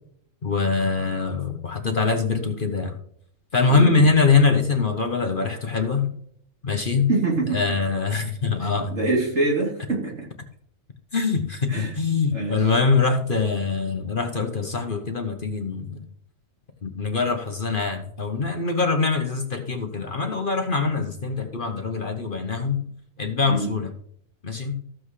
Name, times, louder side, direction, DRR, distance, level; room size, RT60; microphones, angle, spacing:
voice 1, 0.4-2.9 3.5-6.1 6.6-7.1 7.5-8.9 11.1-16.0 16.8-22.9 23.2-23.9 24.4-24.8, left 4 dB, 40° left, 4 dB, 1.2 m, -23 dB
voice 2, 3.7-4.1 7.1-7.6 8.9-10.3 11.7-11.9 12.3-12.7 23.5-23.7, right 3 dB, 55° right, -2 dB, 3.4 m, -25 dB
14.0 x 7.9 x 3.2 m, 0.65 s
omnidirectional pair, 1.4 m